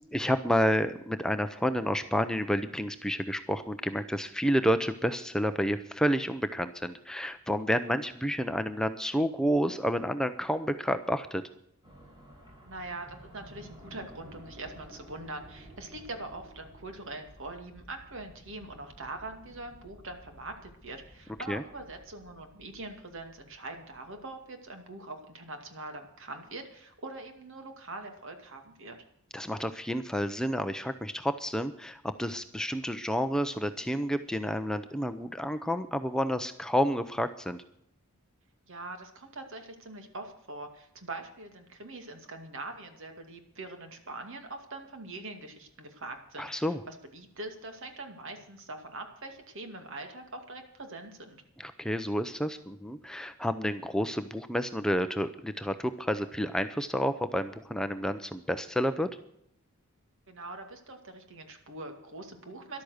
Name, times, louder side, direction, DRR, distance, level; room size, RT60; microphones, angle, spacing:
voice 1, 0.1-11.4 21.5-21.6 29.3-37.6 46.4-46.8 51.6-59.1, equal, 5° left, 9 dB, 0.6 m, -30 dB
sound 1, 11.8-24.4, equal, 20° right, 5.7 m, -53 dB
voice 2, 12.6-29.0 38.7-51.4 60.3-62.8, right 2 dB, 60° right, 6 dB, 2.3 m, -43 dB
13.5 x 12.0 x 6.5 m, 0.71 s
head